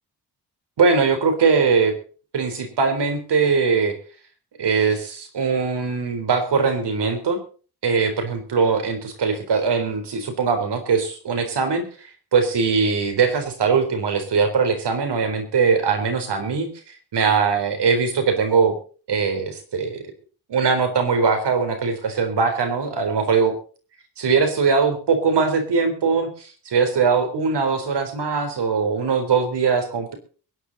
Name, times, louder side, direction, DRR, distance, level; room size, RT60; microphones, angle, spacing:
voice 1, 0.8-1.9 2.3-3.9 4.6-7.4 7.8-11.9 12.3-18.8 19.1-20.0 20.5-23.5 24.2-30.2, right 5 dB, 80° right, 7 dB, 3.9 m, -21 dB
23.0 x 10.5 x 4.1 m, 0.38 s
cardioid pair, 95°, 41 cm